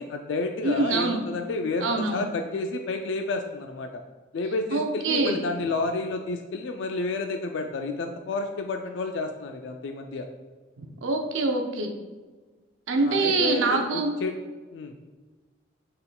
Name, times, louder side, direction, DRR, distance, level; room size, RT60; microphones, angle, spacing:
voice 1, 0.0-3.9 4.3-10.2 13.0-14.4 14.7-14.9, left 3 dB, 70° left, 5 dB, 0.3 m, -30 dB
voice 2, 0.6-1.2 1.8-2.2 4.7-5.4 10.8-11.9 12.9-14.2, right 3 dB, 90° right, 4 dB, 0.6 m, -25 dB
5.7 x 3.7 x 2.2 m, 1.3 s
head